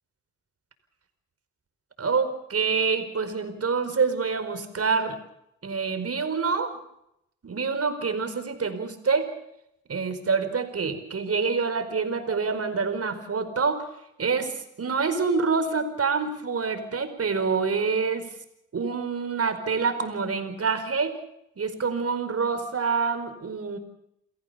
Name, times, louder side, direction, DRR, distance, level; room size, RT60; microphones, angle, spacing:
voice 1, 2.0-5.2 5.6-6.8 7.4-9.3 9.9-13.8 14.2-18.3 18.7-21.1 21.6-23.8, right 5 dB, 50° right, 9 dB, 4.9 m, -26 dB
28.5 x 15.5 x 6.9 m, 0.79 s
supercardioid pair, 45°, 30 cm